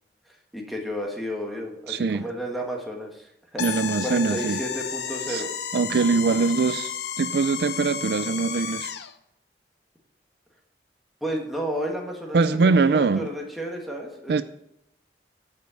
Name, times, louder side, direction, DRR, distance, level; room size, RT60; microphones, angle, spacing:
voice 1, 0.3-3.6 4.0-5.5 11.2-14.4, equal, ahead, -1 dB, 1.5 m, -32 dB
voice 2, 1.9-2.3 3.6-4.6 5.3-5.4 5.7-8.9 12.3-13.3 14.3-14.4, right 4 dB, 65° right, 13 dB, 0.4 m, -22 dB
sound 1, 3.6-9.1, left 8 dB, 70° left, 0.6 m, -32 dB
10.5 x 5.3 x 6.9 m, 0.80 s
head